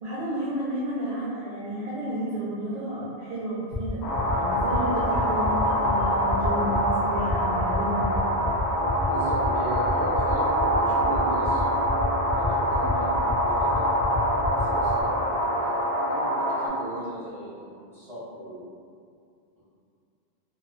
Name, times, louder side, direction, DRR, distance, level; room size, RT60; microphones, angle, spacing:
voice 1, 0.0-8.1, right 1 dB, 55° right, -9 dB, 0.4 m, -32 dB
sound 1, 3.7-15.0, left 1 dB, 55° left, 0.7 m, -31 dB
sound 2, 4.0-16.7, equal, 90° left, 0.9 m, -25 dB
voice 2, 9.1-13.9 14.5-18.6, equal, ahead, -13 dB, 0.8 m, -37 dB
2.3 x 2.2 x 2.4 m, 2.3 s
omnidirectional pair, 1.1 m